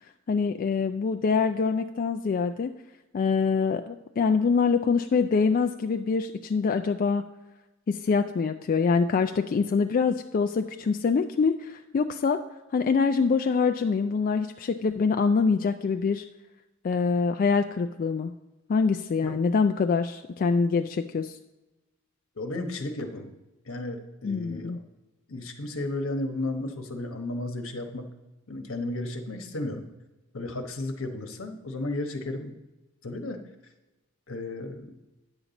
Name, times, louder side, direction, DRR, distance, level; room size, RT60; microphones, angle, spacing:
voice 1, 0.3-2.7 3.1-7.3 7.9-12.4 12.7-16.2 16.8-18.3 18.7-21.4 24.2-24.8, left 5 dB, 40° left, 6 dB, 0.3 m, -25 dB
voice 2, 22.4-23.3 23.7-24.8 25.3-28.1 28.5-29.9 30.3-32.5 33.0-33.4 34.3-35.0, left 2 dB, 75° left, 5 dB, 1.1 m, -33 dB
9.8 x 7.3 x 4.0 m, 1.1 s
head